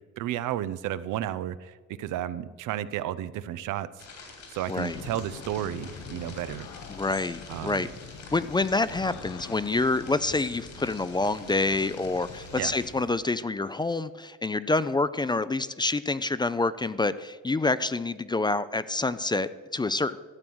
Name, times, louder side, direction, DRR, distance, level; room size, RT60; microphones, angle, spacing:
voice 1, 0.2-3.9 4.5-6.7 7.5-7.9 12.6-12.7, right 12 dB, 85° right, 14 dB, 0.6 m, -32 dB
sound 1, 4.0-12.9, left 4 dB, 65° left, 3.1 m, -47 dB
voice 2, 4.7-5.0 6.9-7.9 8.3-20.2, left 3 dB, 15° left, 15 dB, 0.3 m, -27 dB
sound 2, 4.9-13.1, left 5 dB, 90° left, 1.1 m, -45 dB
12.5 x 7.6 x 6.2 m, 1.4 s
cardioid pair, 90°, 30 cm